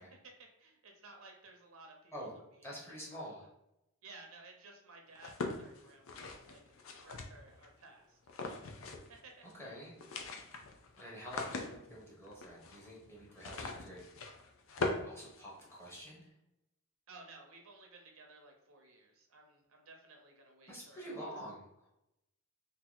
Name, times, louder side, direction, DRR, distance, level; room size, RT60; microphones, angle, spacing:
voice 1, 0.0-2.1 2.7-2.8 3.1-3.2 4.0-6.6 7.0-8.7 9.1-9.3 9.6-9.7 17.1-21.3, right 3 dB, 75° right, 2 dB, 0.7 m, -56 dB
voice 2, 2.6-3.5 9.5-10.0 11.0-14.1 15.0-16.3 20.7-21.9, equal, 10° left, -5 dB, 1.0 m, -47 dB
sound 1, 5.2-7.7 8.3-9.2 9.4-9.5 9.8-16.0, left 3 dB, 65° left, 0.5 m, -42 dB
2.8 x 2.7 x 3.9 m, 0.86 s
head